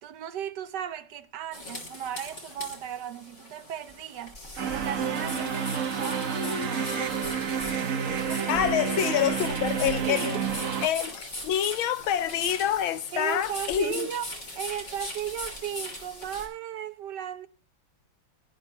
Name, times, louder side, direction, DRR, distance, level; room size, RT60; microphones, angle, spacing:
voice 1, 0.0-4.4 4.7-7.1 8.2-8.6 10.0-10.5 13.1-14.3 14.5-17.5, right 10 dB, 65° right, 1.3 m, -36 dB
sound 1, 1.5-16.5, left 1 dB, 35° left, 3.4 m, -40 dB
sound 2, 4.6-10.9, right 7 dB, 50° right, 1.1 m, -30 dB
Wind instrument woodwind instrument, 4.9-10.7, left 7 dB, 55° left, 1.0 m, -41 dB
voice 2, 8.5-10.4 10.8-14.1, left 10 dB, 85° left, 1.6 m, -27 dB
18.5 x 11.5 x 3.0 m
omnidirectional pair, 2.2 m